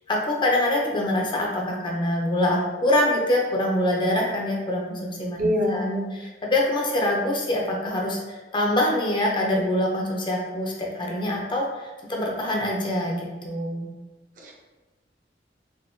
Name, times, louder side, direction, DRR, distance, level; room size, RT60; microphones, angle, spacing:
voice 1, 0.1-13.9, left 1 dB, 25° left, -1 dB, 0.5 m, -25 dB
voice 2, 5.4-6.1 14.4-14.5, left 1 dB, 45° right, -1 dB, 0.6 m, -24 dB
3.5 x 2.6 x 2.6 m, 1.2 s
head